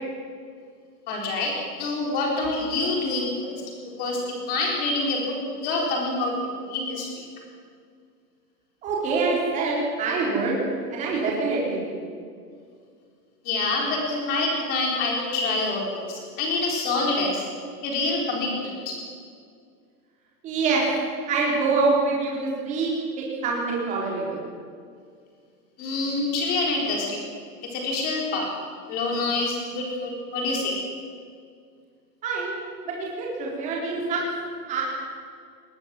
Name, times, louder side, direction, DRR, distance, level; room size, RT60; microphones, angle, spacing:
voice 1, 1.1-3.6 4.0-4.2 4.4-6.3 6.7-7.1 13.4-17.5 17.8-18.9 25.8-27.2 27.7-28.5 28.9-30.7, left 2 dB, 20° left, -1 dB, 4.1 m, -26 dB
voice 2, 8.8-10.6 10.9-12.0 20.4-20.8 21.3-22.9 23.4-24.4 32.2-32.5 32.9-34.2 34.7-34.8, right 4 dB, 15° right, -3 dB, 4.0 m, -25 dB
20.5 x 18.5 x 7.8 m, 2.1 s
hypercardioid pair, 180°, 49 cm